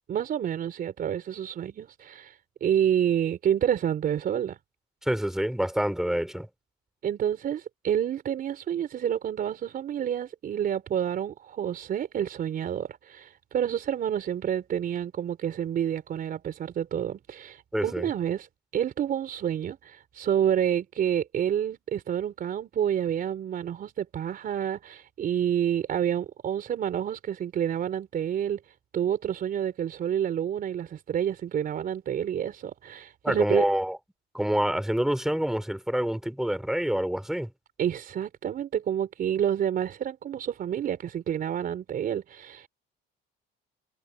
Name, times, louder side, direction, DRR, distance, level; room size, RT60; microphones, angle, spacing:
voice 1, 0.1-4.6 7.0-18.5 18.7-28.6 28.9-33.6 37.8-42.7, right 9 dB, 45° right, 4.0 m, -29 dB
voice 2, 5.0-6.5 17.7-18.1 33.2-34.0 34.3-37.5, equal, ahead, 2.8 m, -27 dB
cardioid pair, 125°, 20 cm